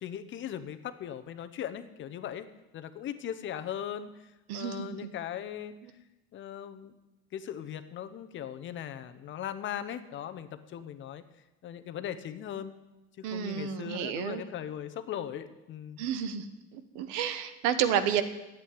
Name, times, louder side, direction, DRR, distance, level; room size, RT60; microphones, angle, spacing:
voice 1, 0.0-2.5 2.7-4.3 4.5-5.7 6.3-6.9 7.3-11.2 11.6-12.7 13.2-16.0, left 10 dB, 40° left, 10 dB, 0.9 m, -39 dB
voice 2, 4.5-5.0 13.2-14.4 16.0-16.5 16.7-18.2, right 9 dB, 85° right, 11 dB, 1.3 m, -30 dB
11.5 x 8.5 x 9.6 m, 0.99 s
cardioid pair, 150°, 30 cm